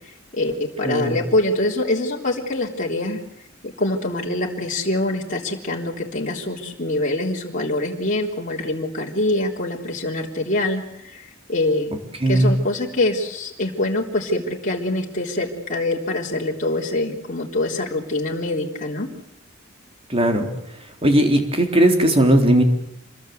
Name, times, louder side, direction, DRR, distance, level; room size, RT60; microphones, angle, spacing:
voice 1, 0.0-3.2 3.6-11.9 12.3-19.1, left 2 dB, 40° left, -2 dB, 3.6 m, -24 dB
voice 2, 0.8-1.2 12.2-12.5 20.1-20.5 21.0-22.6, right 1 dB, 30° right, 4 dB, 4.0 m, -17 dB
27.5 x 21.5 x 8.0 m, 0.76 s
head